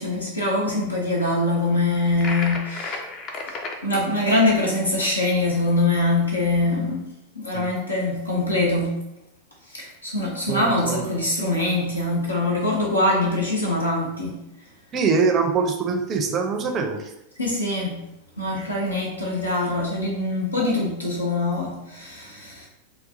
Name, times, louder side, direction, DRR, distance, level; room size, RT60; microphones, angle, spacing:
voice 1, 0.0-3.0 3.5-7.0 7.3-9.0 9.7-14.4 17.4-18.0 18.4-22.7, left 2 dB, 80° left, -3 dB, 0.6 m, -23 dB
sound 1, 2.2-3.8, left 3 dB, 30° left, 0.5 m, -32 dB
voice 2, 10.5-11.1 14.9-17.0, right 5 dB, 30° right, 4 dB, 0.5 m, -23 dB
4.0 x 2.3 x 2.6 m, 0.86 s
figure-of-eight pair, 90°, 0 cm